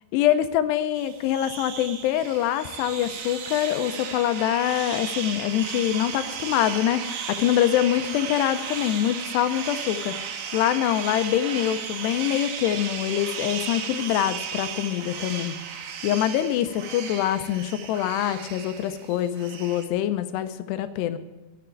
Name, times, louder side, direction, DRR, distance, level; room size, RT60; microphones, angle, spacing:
voice 1, 0.1-15.5 16.0-21.2, left 11 dB, 85° left, 10 dB, 2.8 m, -25 dB
sound 1, 1.0-19.9, right 7 dB, 90° right, 3.3 m, -35 dB
12.5 x 6.7 x 9.0 m, 1.1 s
omnidirectional pair, 4.9 m